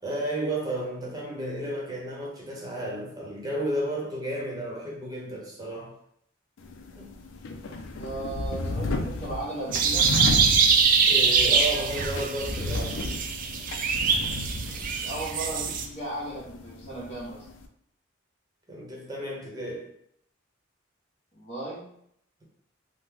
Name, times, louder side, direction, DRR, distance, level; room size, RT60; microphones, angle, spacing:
voice 1, 0.0-5.9 6.9-7.1 11.1-13.1 18.7-19.9, right 1 dB, 20° right, -4 dB, 0.9 m, -32 dB
sound 1, 6.6-17.7, left 2 dB, 75° left, 0.4 m, -34 dB
voice 2, 8.0-10.2 15.0-17.5 21.3-21.9, right 2 dB, 35° left, -6 dB, 0.9 m, -36 dB
sound 2, 9.7-15.9, right 5 dB, 45° right, 0.3 m, -24 dB
3.0 x 2.1 x 3.4 m, 0.71 s
head